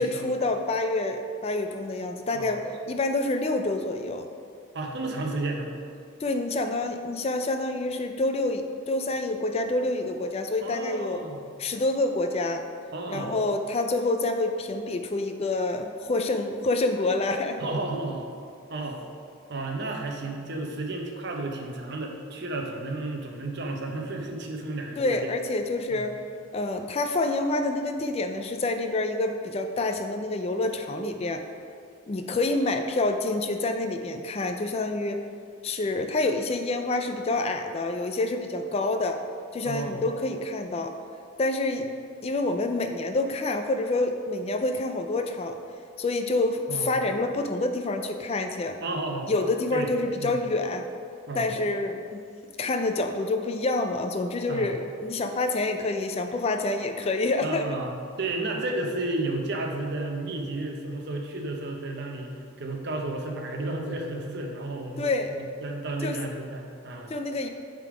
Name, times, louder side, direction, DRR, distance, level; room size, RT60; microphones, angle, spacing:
voice 1, 0.0-4.3 6.2-11.2 11.6-12.7 13.1-17.6 25.0-26.2 26.5-31.4 32.1-35.3 35.6-39.2 39.5-40.9 41.4-41.9 42.2-45.6 46.0-48.8 49.3-50.9 51.4-52.2 52.6-57.8 65.0-65.4 66.0-66.2 67.1-67.5, left 2 dB, 30° left, 6 dB, 0.3 m, -27 dB
voice 2, 2.3-2.7 4.7-5.7 10.6-11.4 12.9-13.4 17.6-18.3 18.7-19.0 19.5-25.3 25.9-26.0 39.6-40.0 46.7-46.9 48.8-49.3 49.7-49.9 50.2-50.3 51.3-51.5 54.5-54.8 57.4-62.3 62.6-67.1, right 2 dB, 55° right, 2 dB, 0.8 m, -32 dB
9.2 x 3.7 x 4.9 m, 2.4 s
head